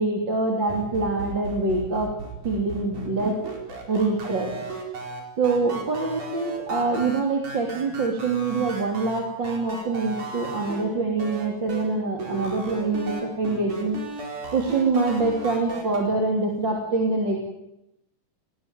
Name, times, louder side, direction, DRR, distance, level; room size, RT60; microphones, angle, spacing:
voice 1, 0.0-2.2 2.4-3.4 3.9-4.6 5.4-14.0 14.5-17.4, right 3 dB, 35° right, 1 dB, 3.4 m, -25 dB
sound 1, 0.7-10.8 11.2-11.8 12.2-16.0, right 4 dB, 60° right, 5.9 m, -36 dB
20.0 x 18.5 x 9.2 m, 0.86 s
omnidirectional pair, 3.9 m